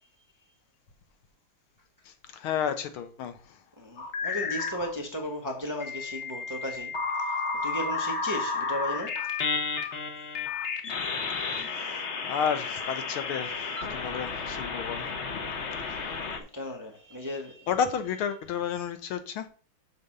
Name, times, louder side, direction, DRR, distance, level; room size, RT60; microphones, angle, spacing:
voice 1, 2.0-3.6 11.3-15.1 15.8-16.2 17.7-19.5, left 7 dB, 75° left, 1.7 m, -32 dB
voice 2, 3.8-6.9 7.6-9.2 11.1-11.2 16.3-17.7, left 1 dB, 10° right, 1.0 m, -35 dB
sound 1, 4.0-4.9 5.8-16.4, left 4 dB, 50° left, 0.8 m, -32 dB
6.7 x 4.4 x 6.6 m
omnidirectional pair, 2.4 m